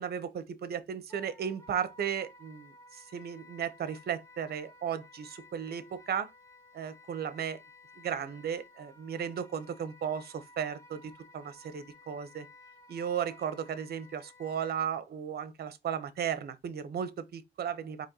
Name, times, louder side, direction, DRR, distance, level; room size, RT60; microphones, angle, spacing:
voice 1, 0.0-6.3 6.7-7.6 8.0-12.5 12.9-18.1, right 8 dB, 55° right, 0.8 m, -35 dB
Wind instrument woodwind instrument, 1.1-14.9, left 2 dB, 15° left, 0.9 m, -56 dB
4.2 x 3.0 x 3.9 m
cardioid pair, 90°, 20 cm